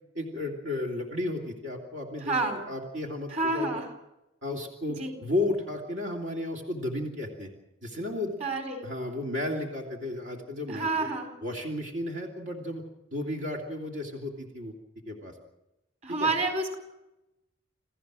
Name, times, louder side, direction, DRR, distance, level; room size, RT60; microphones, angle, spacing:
voice 1, 0.1-3.8 4.4-7.5 7.8-8.4 8.8-10.9 11.4-12.8 13.1-14.7 15.0-15.3 16.1-16.3, left 1 dB, 75° right, 1 dB, 2.8 m, -33 dB
voice 2, 2.2-2.6 3.3-3.9 5.0-5.1 8.4-8.8 10.7-11.3 16.0-16.8, right 3 dB, 35° right, 4 dB, 4.2 m, -29 dB
28.0 x 15.5 x 6.3 m, 0.93 s
head